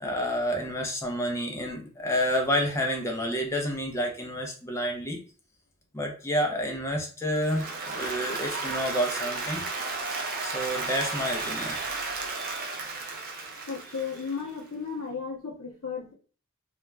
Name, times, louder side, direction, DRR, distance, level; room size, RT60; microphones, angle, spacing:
voice 1, 0.0-5.2 5.9-9.6 10.4-11.8, equal, 15° left, 1 dB, 0.5 m, -29 dB
Applause, 7.3-14.5, right 3 dB, 40° right, 0.5 m, -33 dB
voice 2, 12.9-13.3 13.6-16.1, left 5 dB, 65° left, -3 dB, 0.6 m, -35 dB
2.3 x 2.1 x 3.2 m, 0.38 s
head